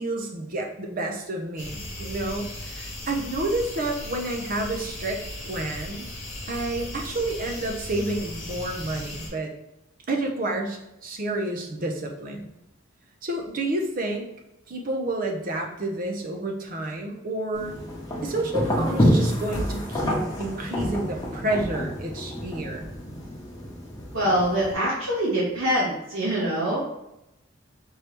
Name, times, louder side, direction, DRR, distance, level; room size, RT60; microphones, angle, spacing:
voice 1, 0.0-6.1 6.5-9.5 10.1-12.5 13.2-14.3 14.7-17.8 18.2-22.9, right 2 dB, 45° right, 2 dB, 0.7 m, -30 dB
sound 1, 1.6-9.3, left 1 dB, 40° left, 1.3 m, -37 dB
sound 2, 17.5-24.7, equal, 20° left, 1.0 m, -27 dB
voice 2, 24.1-26.8, right 1 dB, 90° right, -7 dB, 1.4 m, -24 dB
4.5 x 3.1 x 3.3 m, 0.88 s
head